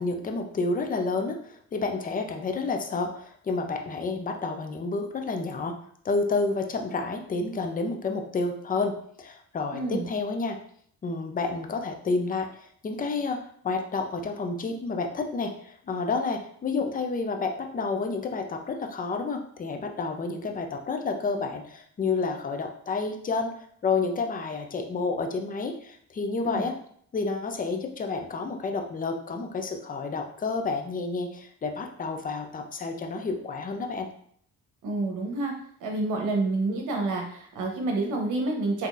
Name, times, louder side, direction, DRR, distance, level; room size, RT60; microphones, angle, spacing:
voice 1, 0.0-5.7 6.0-10.6 11.0-13.4 13.6-23.5 23.8-26.7 27.1-34.1, left 3 dB, 30° left, 4 dB, 0.5 m, -30 dB
voice 2, 9.7-10.0 26.4-26.6 34.8-35.5 35.8-38.9, right 2 dB, 85° right, 1 dB, 0.9 m, -28 dB
3.7 x 2.8 x 2.5 m, 0.62 s
cardioid pair, 90°, 30 cm